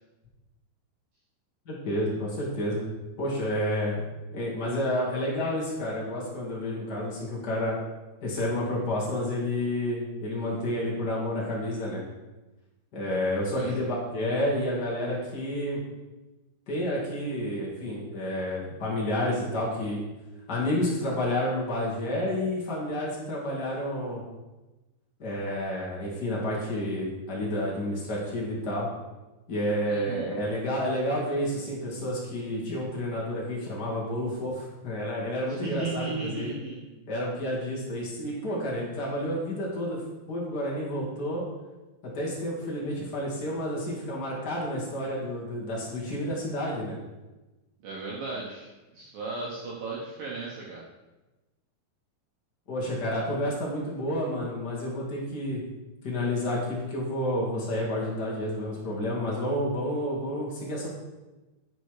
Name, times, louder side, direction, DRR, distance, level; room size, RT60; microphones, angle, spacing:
voice 1, 1.6-2.8 3.2-4.0 4.3-7.8 8.2-12.0 12.9-15.8 16.7-20.0 20.5-24.2 25.2-28.9 29.5-36.5 37.1-40.0 40.3-41.4 42.1-47.0 52.7-55.6 56.0-61.0, left 1 dB, 60° left, -5 dB, 1.0 m, -30 dB
voice 2, 29.8-30.3 35.5-37.0 47.8-50.8, right 4 dB, 70° right, -4 dB, 2.4 m, -36 dB
9.2 x 5.5 x 4.9 m, 1.1 s
omnidirectional pair, 5.0 m